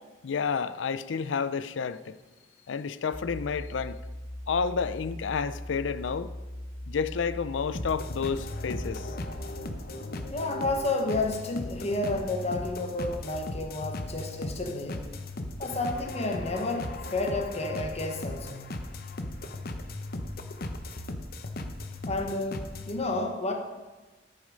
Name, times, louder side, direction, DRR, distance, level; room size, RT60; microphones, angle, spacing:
voice 1, 0.2-2.2 2.7-4.0 4.5-6.3 6.9-9.1, left 5 dB, 80° left, 0.5 m, -30 dB
sound 1, 3.1-9.6, left 1 dB, 5° left, 1.8 m, -40 dB
sound 2, 7.7-23.0, left 2 dB, 55° left, 0.8 m, -37 dB
voice 2, 10.3-15.1 15.6-18.6 22.1-23.5, left 2 dB, 35° left, 1.0 m, -31 dB
13.0 x 6.7 x 5.2 m
head